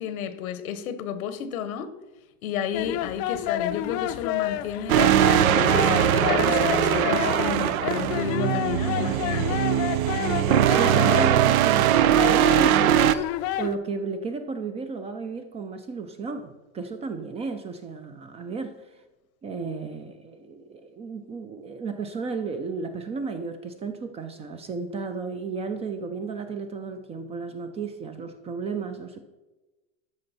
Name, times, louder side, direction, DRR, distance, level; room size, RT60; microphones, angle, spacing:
voice 1, 0.0-1.9 2.4-9.7, left 8 dB, 85° left, 1.1 m, -32 dB
sound 1, 2.7-13.7, left 12 dB, 40° left, 0.5 m, -30 dB
sound 2, 4.9-13.1, right 11 dB, 85° right, 0.7 m, -21 dB
voice 2, 10.2-13.2 13.6-18.7 19.4-29.2, right 4 dB, 15° right, 0.4 m, -33 dB
13.0 x 5.1 x 4.2 m
supercardioid pair, 135°, 41 cm